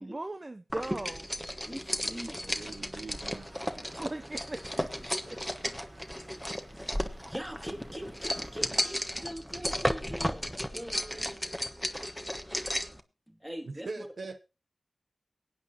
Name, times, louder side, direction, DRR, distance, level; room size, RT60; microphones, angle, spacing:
voice 1, 0.0-1.3 4.0-5.4, right 2 dB, 40° right, 9 dB, 0.7 m, -39 dB
sound 1, 0.7-13.0, equal, ahead, 1.2 m, -34 dB
voice 2, 1.6-2.7 7.0-12.1 13.3-14.1, equal, 15° right, 3 dB, 2.8 m, -43 dB
voice 3, 2.5-3.5 13.6-14.4, right 3 dB, 80° right, 10 dB, 0.7 m, -42 dB
sound 2, 3.1-8.7, right 1 dB, 55° right, 3.9 m, -55 dB
23.0 x 8.8 x 2.9 m, 0.29 s
cardioid pair, 40°, 0 cm